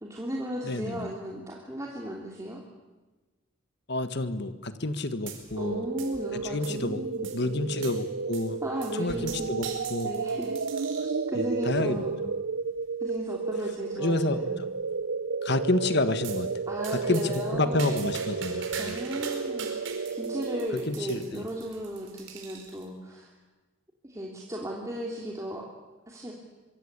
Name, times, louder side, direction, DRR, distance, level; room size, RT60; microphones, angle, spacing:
voice 1, 0.0-2.6 5.6-7.7 8.6-9.6 10.0-10.6 11.0-12.2 13.0-14.6 16.7-18.0 18.8-23.3 24.0-25.6 26.1-26.3, equal, 15° right, -2 dB, 3.1 m, -36 dB
voice 2, 0.6-1.1 3.9-5.9 6.4-8.6 8.9-10.1 11.3-12.0 14.0-14.7 15.4-16.5 16.9-19.0 20.7-21.5, left 2 dB, 55° left, 11 dB, 1.6 m, -29 dB
sound 1, 5.3-5.7 6.0-6.9 7.2-7.4 7.8-8.0 8.3-8.5 8.8-11.2 11.8-12.1 12.8-12.9 13.2-13.3 13.6-13.7 14.1-14.6 16.2-16.4 16.8-22.8, right 7 dB, 65° right, 5.1 m, -42 dB
sound 2, 5.6-20.7, right 4 dB, 85° right, 0.7 m, -32 dB
24.5 x 24.5 x 8.3 m, 1.2 s
head